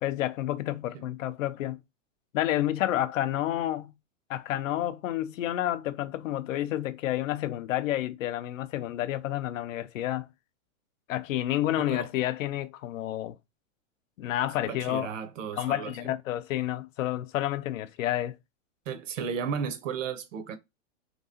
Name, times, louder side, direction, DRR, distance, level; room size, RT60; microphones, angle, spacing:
voice 1, 0.0-1.8 2.3-3.9 4.3-10.3 11.1-13.4 14.2-15.1 15.5-18.4, left 13 dB, 90° left, 0.6 m, -30 dB
voice 2, 11.8-12.1 14.7-15.9 18.9-20.6, right 6 dB, 80° right, 0.8 m, -34 dB
2.9 x 2.8 x 2.7 m
supercardioid pair, 170°, 38 cm